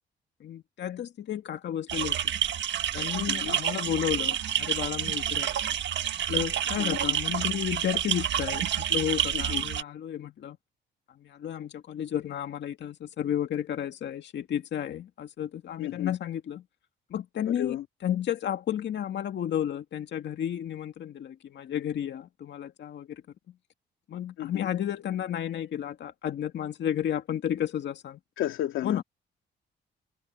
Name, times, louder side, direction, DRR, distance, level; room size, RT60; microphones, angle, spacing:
voice 1, 0.4-2.2 2.9-5.6 6.1-10.6 11.2-16.6 17.1-17.8 18.0-23.2 24.1-28.2 28.8-29.0, left 10 dB, 65° left, 2.1 m, -32 dB
sound 1, 1.9-9.8, right 10 dB, 65° right, 1.6 m, -29 dB
voice 2, 3.3-3.6 6.8-7.2 9.3-9.7 15.8-16.1 17.5-17.8 24.4-24.7 28.4-29.0, left 13 dB, 90° left, 2.4 m, -33 dB
cardioid pair, 90°, 20 cm